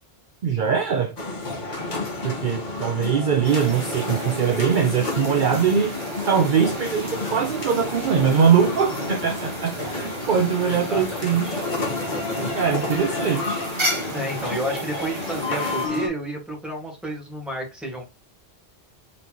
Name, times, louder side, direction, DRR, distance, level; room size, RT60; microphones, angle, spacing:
voice 1, 0.4-1.2 2.2-11.5 12.5-13.6, right 7 dB, 55° right, 0.7 m, -22 dB
sound 1, 1.2-16.1, left 2 dB, 45° left, 1.5 m, -30 dB
sound 2, 3.4-15.9, right 1 dB, 30° right, 1.2 m, -35 dB
voice 2, 10.7-11.7 12.0-12.6 14.1-18.0, right 1 dB, ahead, 1.8 m, -31 dB
4.3 x 4.0 x 2.9 m
omnidirectional pair, 1.1 m